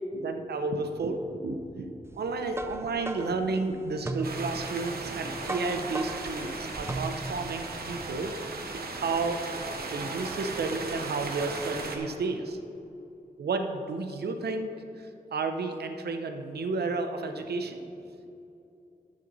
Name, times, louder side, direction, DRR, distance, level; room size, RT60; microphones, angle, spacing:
voice 1, 0.1-8.3 8.7-9.4 9.9-12.6 13.4-14.7 15.3-17.8, right 3 dB, 90° right, 6 dB, 0.7 m, -32 dB
sound 1, 2.1-7.6, right 2 dB, 15° right, 0.4 m, -38 dB
sound 2, 4.2-12.0, right 3 dB, 70° right, 1.0 m, -37 dB
10.5 x 7.5 x 4.0 m, 2.8 s
wide cardioid pair, 90°, 16 cm